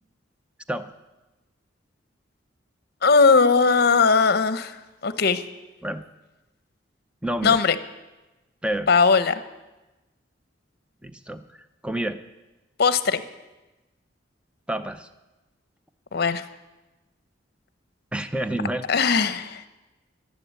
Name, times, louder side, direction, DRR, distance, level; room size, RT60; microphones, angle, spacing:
voice 1, 3.0-4.8 5.0-5.4 7.4-7.8 8.9-9.4 12.8-13.2 16.1-16.4 18.9-19.7, left 5 dB, 55° left, 12 dB, 0.8 m, -19 dB
voice 2, 7.2-7.6 8.6-8.9 11.0-11.5 11.8-12.2 14.7-15.1 18.1-18.9, right 1 dB, 5° right, 10 dB, 0.6 m, -28 dB
12.0 x 10.5 x 8.3 m, 1.1 s
head